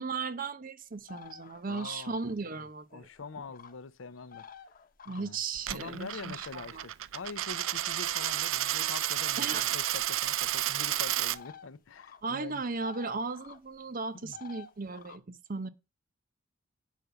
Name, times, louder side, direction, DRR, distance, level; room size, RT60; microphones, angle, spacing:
voice 1, 0.0-3.1 5.1-6.9 9.4-9.6 12.2-15.7, right 4 dB, 45° right, 0.7 m, -36 dB
sound 1, 1.0-2.6 2.9-3.7 4.2-5.5 5.9-6.8 7.6-8.2 9.4-9.6 10.2-10.3 11.3-11.7 12.0-12.2 12.5-13.6 14.3-15.2, left 7 dB, 45° left, 1.0 m, -51 dB
voice 2, 1.7-2.1 2.9-4.5 5.2-5.4 5.7-12.6 14.2-14.4, left 5 dB, 80° left, 0.6 m, -44 dB
Coin (dropping), 5.6-11.4, right 13 dB, 80° right, 0.4 m, -31 dB
9.3 x 4.9 x 6.9 m
head